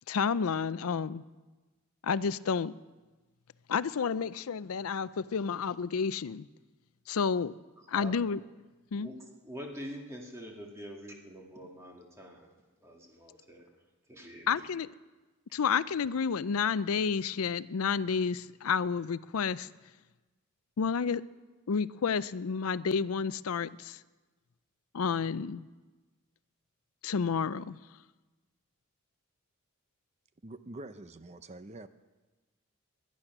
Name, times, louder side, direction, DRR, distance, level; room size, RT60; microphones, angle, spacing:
voice 1, 0.1-1.2 2.0-2.7 3.7-6.5 7.1-7.5 7.9-8.4 8.9-9.1 14.5-14.9 15.5-19.7 20.8-21.2 21.7-24.0 24.9-25.7 27.0-27.8, left 6 dB, 75° left, 17 dB, 0.5 m, -30 dB
voice 2, 9.0-12.5 12.8-13.7 14.1-14.7, equal, 15° right, 0 dB, 2.0 m, -45 dB
voice 3, 30.4-31.9, right 2 dB, 30° right, 11 dB, 0.6 m, -45 dB
20.5 x 11.5 x 6.0 m, 1.2 s
head